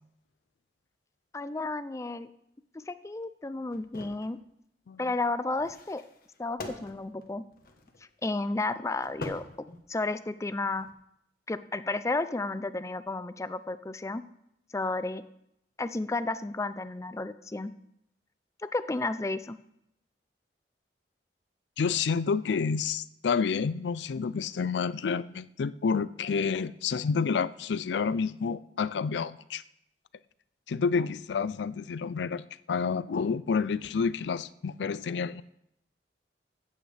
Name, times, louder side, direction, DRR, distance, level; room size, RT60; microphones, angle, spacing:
voice 1, 1.3-2.3 2.7-4.4 5.0-6.0 6.4-7.4 8.2-9.4 9.9-10.9 11.5-14.2 14.7-15.2 15.8-17.7 18.6-19.6, left 2 dB, 15° left, 13 dB, 0.4 m, -32 dB
sound 1, 3.7-4.3 5.6-8.1 9.0-10.2 10.7-10.9, left 2 dB, 55° left, 1.2 m, -43 dB
voice 2, 21.8-29.6 30.7-35.4, left 5 dB, 80° left, 17 dB, 0.4 m, -29 dB
15.0 x 8.6 x 3.4 m, 0.77 s
head